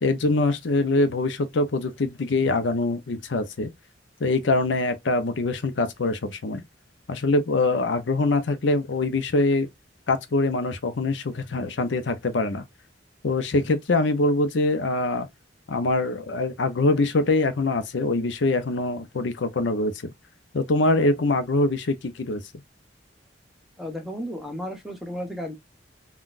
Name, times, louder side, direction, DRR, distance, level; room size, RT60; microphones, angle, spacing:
voice 1, 0.0-3.7 4.2-6.6 7.1-9.7 10.1-12.6 13.2-15.3 15.7-20.1 20.5-22.4, left 2 dB, 90° left, 0.6 m, -24 dB
voice 2, 23.8-25.6, equal, ahead, 0.7 m, -33 dB
3.8 x 2.3 x 2.5 m
head